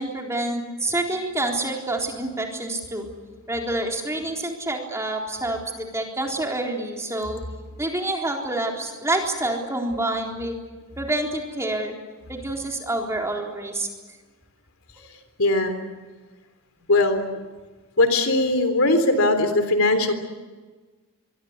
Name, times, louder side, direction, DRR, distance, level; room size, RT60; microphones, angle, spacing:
voice 1, 0.0-3.1 3.5-7.4 7.8-10.6 11.0-11.9 12.3-13.9 15.0-15.1, right 1 dB, 15° right, 1 dB, 3.9 m, -27 dB
voice 2, 15.4-15.9 16.9-17.2 18.0-20.1, left 2 dB, 65° left, 8 dB, 3.5 m, -20 dB
24.5 x 24.0 x 8.2 m, 1.3 s
head